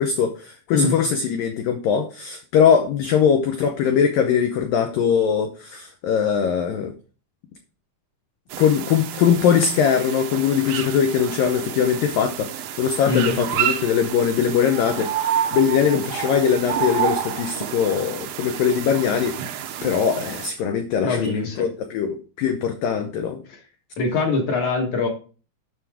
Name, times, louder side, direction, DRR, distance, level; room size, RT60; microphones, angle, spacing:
voice 1, 0.0-6.9 8.6-19.4 19.8-23.4, left 7 dB, 90° left, 6 dB, 1.9 m, -21 dB
sound 1, 8.5-20.5, right 9 dB, 80° right, 2.2 m, -29 dB
voice 2, 21.0-21.7 23.5-23.6 24.0-25.1, left 4 dB, 60° left, 2 dB, 2.0 m, -23 dB
9.4 x 6.3 x 3.5 m, 0.37 s
omnidirectional pair, 5.1 m